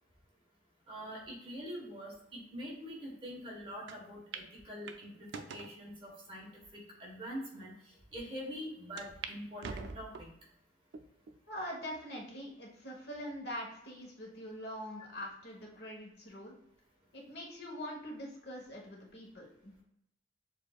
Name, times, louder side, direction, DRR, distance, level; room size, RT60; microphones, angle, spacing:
voice 1, 0.9-10.3 15.0-15.1, equal, 30° right, -3 dB, 1.2 m, -45 dB
sound 1, 3.9-4.0 4.3-4.5 4.9-5.7 6.4-6.5 7.2-7.3 7.6-7.7 9.0-9.3 9.6-10.4 10.9-11.4 11.9-12.0 13.1-13.6, right 5 dB, 75° right, 0.4 m, -44 dB
voice 2, 11.5-16.5 17.1-19.7, equal, 65° left, -1 dB, 1.1 m, -43 dB
6.8 x 2.6 x 2.3 m, 0.80 s
head